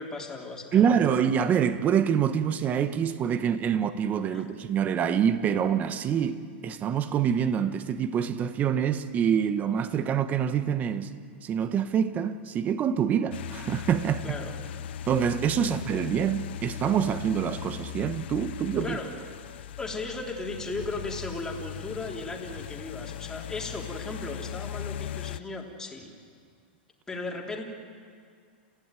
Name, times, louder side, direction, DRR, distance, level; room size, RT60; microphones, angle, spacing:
voice 1, 0.0-0.8 4.3-4.5 14.2-14.5 18.8-19.1 19.8-26.1 27.1-27.6, left 3 dB, 10° left, 3.5 m, -36 dB
voice 2, 0.7-11.1 11.4-14.3 15.1-19.0, right 8 dB, 25° right, 1.3 m, -26 dB
sound 1, 13.3-25.4, left 10 dB, 75° left, 0.6 m, -39 dB
30.0 x 15.5 x 9.2 m
hypercardioid pair, 135°, 6 cm